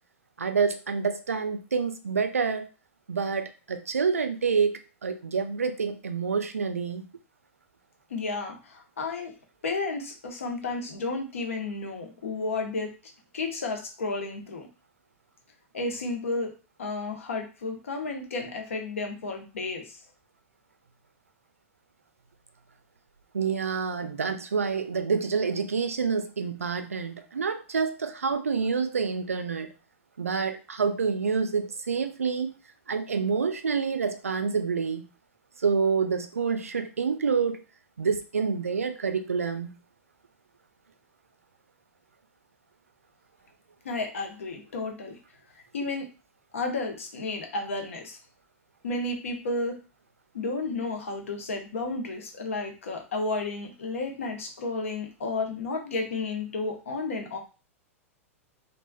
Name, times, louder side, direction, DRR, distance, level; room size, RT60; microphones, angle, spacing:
voice 1, 0.4-2.7 3.1-7.1 23.3-29.7 30.2-32.5 32.9-35.1 35.6-37.6 38.0-39.8, right 5 dB, 75° right, 8 dB, 0.4 m, -27 dB
voice 2, 8.1-9.3 9.6-12.9 13.3-14.7 15.7-20.0 43.8-45.2 45.7-46.1 46.5-48.2 48.8-49.8 50.3-57.4, left 3 dB, 65° left, 3 dB, 0.8 m, -32 dB
3.2 x 2.4 x 2.3 m, 0.32 s
figure-of-eight pair, 95°, 8 cm